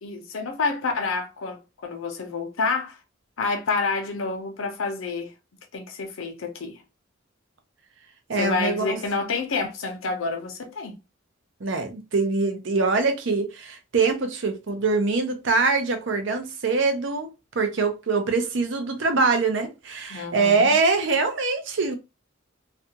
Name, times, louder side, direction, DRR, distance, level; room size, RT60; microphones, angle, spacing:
voice 1, 0.0-3.0 3.4-5.3 5.7-6.8 8.3-11.0 20.1-20.7, left 4 dB, 90° left, 0.6 m, -28 dB
voice 2, 8.3-9.0 11.6-17.3 17.5-21.9, right 4 dB, 65° right, 0.6 m, -23 dB
2.4 x 2.2 x 2.8 m
head